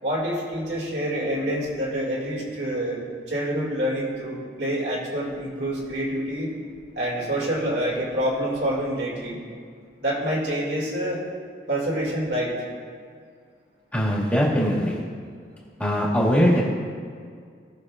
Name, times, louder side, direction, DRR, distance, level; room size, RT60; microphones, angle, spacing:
voice 1, 0.0-3.0 3.3-6.5 6.9-9.4 10.0-11.2 11.7-12.5, equal, 65° right, -4 dB, 2.4 m, -27 dB
voice 2, 13.9-15.0 15.8-16.6, equal, 10° left, -7 dB, 1.9 m, -21 dB
18.0 x 6.6 x 2.5 m, 2.1 s
head